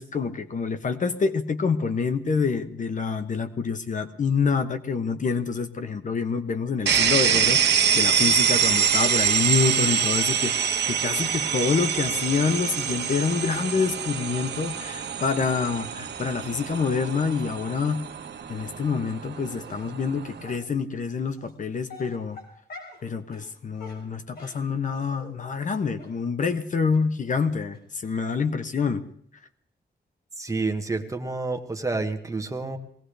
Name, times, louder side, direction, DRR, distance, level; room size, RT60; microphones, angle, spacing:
voice 1, 0.0-18.0 18.5-22.4 23.0-29.0, left 5 dB, 45° left, 9 dB, 1.0 m, -27 dB
sound 1, 6.9-20.6, right 8 dB, 80° right, 1.2 m, -25 dB
Dog, 19.5-19.9 20.5-20.6 21.4-21.5 21.9-23.0 23.3-23.5 23.8-25.3 25.6-25.7 26.0-26.1 26.4-26.5 26.9-27.0 27.4-27.5 27.7-27.8, left 3 dB, 65° left, 5.7 m, -45 dB
voice 2, 30.4-32.8, right 3 dB, 20° right, 4 dB, 1.5 m, -29 dB
21.5 x 17.5 x 3.4 m, 0.67 s
wide cardioid pair, 160°, 18 cm